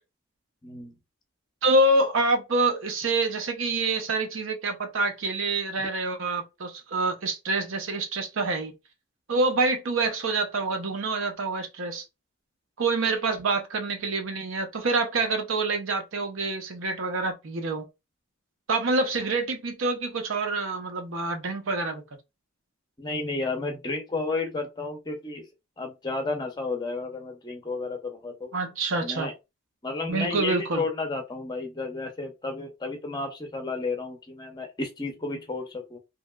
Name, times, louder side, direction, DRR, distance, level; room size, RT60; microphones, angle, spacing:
voice 1, 0.6-0.9 5.8-5.9 23.0-25.5 25.8-28.5 29.0-29.3 29.8-36.0, left 3 dB, 20° left, 0.6 m, -32 dB
voice 2, 1.6-8.7 9.3-12.0 12.8-17.9 18.7-22.0 28.5-29.3 30.1-30.8, right 2 dB, 65° right, 0.6 m, -26 dB
2.9 x 2.8 x 2.2 m
head